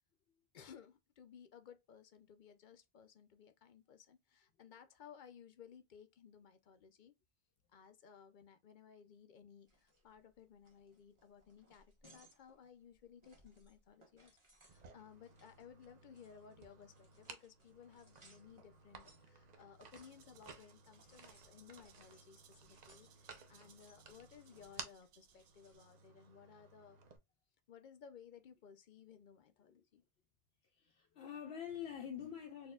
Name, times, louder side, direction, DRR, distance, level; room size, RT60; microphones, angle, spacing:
voice 1, 0.5-7.1 7.7-14.3 14.6-27.0 27.7-30.0, left 7 dB, 60° left, 0.6 m, -59 dB
sound 1, 9.7-25.8, right 2 dB, 30° right, 1.2 m, -70 dB
sound 2, 14.7-27.2, right 5 dB, 50° right, 0.7 m, -57 dB
Rattle (instrument), 19.7-26.3, right 8 dB, 80° right, 0.9 m, -68 dB
voice 2, 30.7-32.7, left 9 dB, 85° left, 0.9 m, -46 dB
4.2 x 2.7 x 2.3 m
omnidirectional pair, 1.0 m